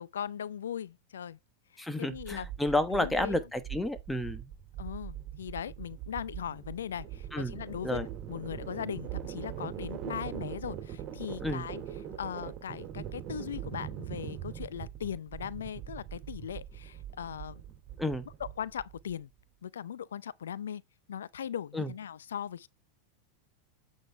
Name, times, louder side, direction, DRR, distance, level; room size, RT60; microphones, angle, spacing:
voice 1, 0.0-1.4 1.7-2.5 2.9-3.4 4.8-11.8 12.2-17.6 18.4-19.3 19.6-20.8 21.1-22.7, left 9 dB, 80° left, 0.5 m, -39 dB
voice 2, 1.8-4.5 7.3-7.5 7.8-8.0 11.4-11.7 18.0-18.3 21.7-21.9, left 1 dB, 5° left, 1.2 m, -31 dB
sound 1, 2.1-19.1, right 10 dB, 40° right, 2.9 m, -42 dB
8.1 x 6.2 x 3.4 m
hypercardioid pair, 100°, 0 cm